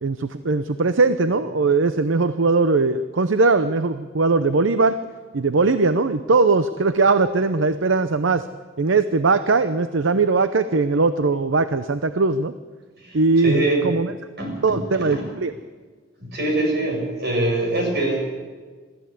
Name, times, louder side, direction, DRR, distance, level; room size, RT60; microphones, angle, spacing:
voice 1, 0.0-5.0 5.3-8.5 8.8-12.5 13.1-14.1 14.6-15.5, right 3 dB, 80° right, 11 dB, 0.7 m, -20 dB
voice 2, 13.0-13.8 14.4-15.3 16.2-18.2, right 2 dB, 60° right, 1 dB, 6.7 m, -24 dB
23.5 x 14.0 x 8.3 m, 1.5 s
head